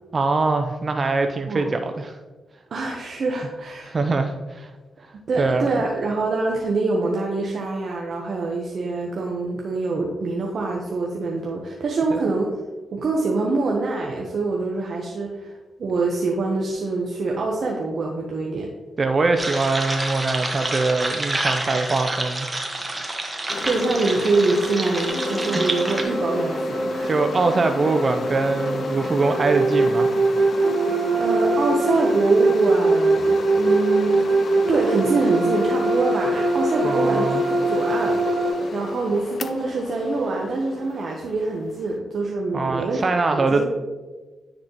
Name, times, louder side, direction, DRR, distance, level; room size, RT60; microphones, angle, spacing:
voice 1, 0.1-2.2 3.9-4.7 5.4-5.7 12.1-12.2 19.0-22.5 27.0-30.1 36.8-37.4 42.5-43.6, right 3 dB, 45° right, 6 dB, 0.5 m, -23 dB
voice 2, 2.7-3.9 5.3-12.6 12.9-18.7 23.6-27.1 31.2-34.4 34.7-38.2 38.7-43.0 43.3-43.6, right 3 dB, 60° right, -1 dB, 0.9 m, -25 dB
sound 1, 19.4-26.0, right 2 dB, 25° right, 1.3 m, -28 dB
sound 2, 23.5-42.0, left 4 dB, 60° left, 0.4 m, -33 dB
sound 3, 25.1-38.5, right 2 dB, 80° right, 1.5 m, -22 dB
9.5 x 4.2 x 2.9 m, 1.3 s
supercardioid pair, 50°, 0 cm